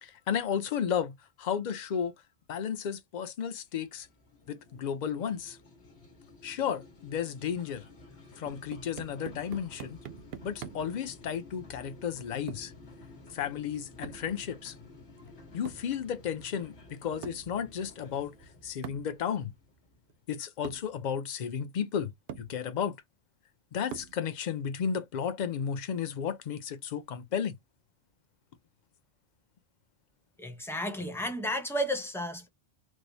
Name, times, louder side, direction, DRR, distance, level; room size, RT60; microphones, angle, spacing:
voice 1, 0.0-2.1 2.5-4.1 4.5-5.6 6.4-7.8 8.4-10.0 10.4-12.7 13.3-14.8 15.5-18.4 18.6-19.5 20.3-22.1 22.4-23.0 23.7-27.5, left 8 dB, 50° left, 0.7 m, -33 dB
sound 1, 3.7-20.3, left 2 dB, 80° left, 1.6 m, -53 dB
sound 2, 8.4-11.0 12.5-12.8 14.0-14.3 15.7-16.0 17.2-17.5 18.8-19.2 20.1-20.2 20.6-20.9 21.8-21.9 22.3-22.6 23.9-24.3, right 9 dB, 70° right, 0.8 m, -44 dB
voice 2, 30.4-32.5, equal, 5° left, 0.6 m, -32 dB
4.8 x 2.0 x 2.7 m
omnidirectional pair, 1.1 m